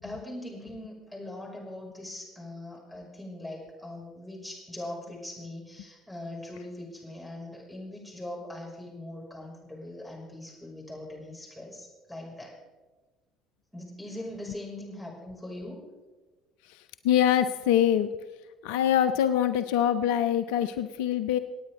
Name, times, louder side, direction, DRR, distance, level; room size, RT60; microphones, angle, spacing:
voice 1, 0.0-12.5 13.7-15.8, left 1 dB, ahead, -4 dB, 5.7 m, -41 dB
voice 2, 16.7-18.1 18.6-21.4, left 10 dB, 65° left, 10 dB, 0.5 m, -24 dB
25.5 x 9.2 x 3.7 m, 1.2 s
figure-of-eight pair, 55°, 0 cm